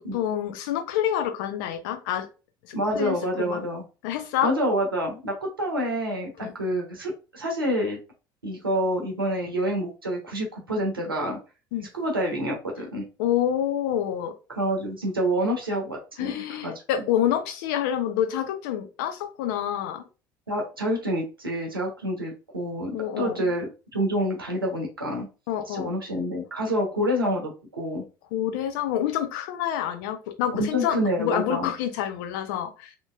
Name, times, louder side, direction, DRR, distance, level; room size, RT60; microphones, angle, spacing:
voice 1, 0.1-2.3 2.7-3.6 4.0-4.5 6.4-6.5 11.7-11.9 13.2-14.3 16.2-20.0 22.9-23.5 25.5-25.9 28.3-32.9, left 10 dB, 65° left, 6 dB, 0.6 m, -27 dB
voice 2, 2.7-3.8 4.4-8.0 8.4-11.4 11.9-13.0 14.5-16.7 20.5-25.3 25.7-28.0 30.5-31.7, equal, 90° right, 1 dB, 0.8 m, -27 dB
2.8 x 2.8 x 2.3 m, 0.31 s
figure-of-eight pair, 65°, 11 cm